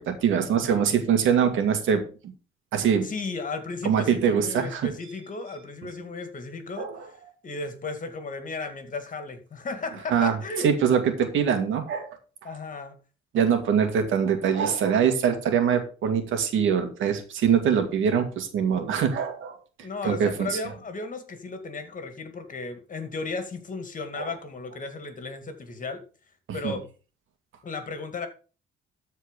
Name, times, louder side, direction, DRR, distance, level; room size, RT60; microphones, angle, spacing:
voice 1, 0.1-2.0 2.7-3.1 3.8-4.9 6.8-7.1 10.1-10.3 10.6-12.1 13.3-19.6 20.0-20.6 24.2-24.3 26.6-26.8, right 7 dB, 80° right, 7 dB, 2.1 m, -23 dB
voice 2, 3.0-7.1 7.4-10.7 12.4-13.0 19.8-26.0 26.5-26.8 27.6-28.3, left 3 dB, 40° left, 8 dB, 2.3 m, -35 dB
13.5 x 4.6 x 5.3 m, 0.36 s
cardioid pair, 90°, 20 cm